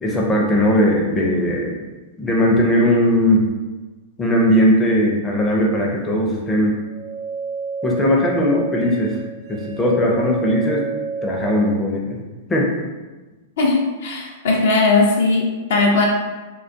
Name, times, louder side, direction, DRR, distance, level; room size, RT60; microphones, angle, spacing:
voice 1, 0.0-1.8 2.2-3.5 4.2-6.8 7.8-9.2 9.5-10.8 11.2-12.2 12.5-12.7, equal, 15° left, -2 dB, 0.5 m, -18 dB
sound 1, 6.8-11.8, right 4 dB, 40° right, 0.3 m, -29 dB
voice 2, 13.6-15.4 15.7-16.0, left 3 dB, 70° left, -1 dB, 0.5 m, -17 dB
2.3 x 2.3 x 2.5 m, 1.2 s
hypercardioid pair, 110°, 0 cm